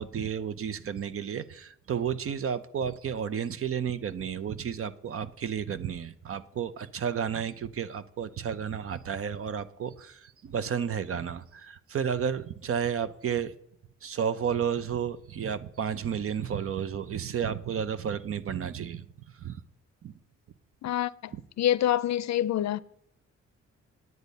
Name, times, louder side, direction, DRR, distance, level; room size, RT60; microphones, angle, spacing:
voice 1, 0.0-13.5 14.0-19.0 19.4-19.6 20.0-20.1 21.3-21.4, right 8 dB, 50° right, 0.6 m, -32 dB
voice 2, 20.8-21.3 21.6-22.8, left 11 dB, 65° left, 0.5 m, -26 dB
10.0 x 9.4 x 5.3 m
wide cardioid pair, 165°, 29 cm